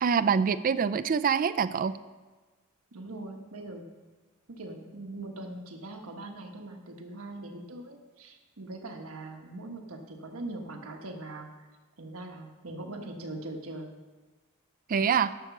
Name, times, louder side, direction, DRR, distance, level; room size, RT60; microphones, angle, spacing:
voice 1, 0.0-2.0 14.9-15.3, right 6 dB, 40° right, 13 dB, 0.4 m, -25 dB
voice 2, 2.9-3.8 4.5-11.5 12.0-13.9, right 2 dB, 80° right, 4 dB, 1.3 m, -41 dB
11.0 x 6.6 x 6.0 m, 1.3 s
head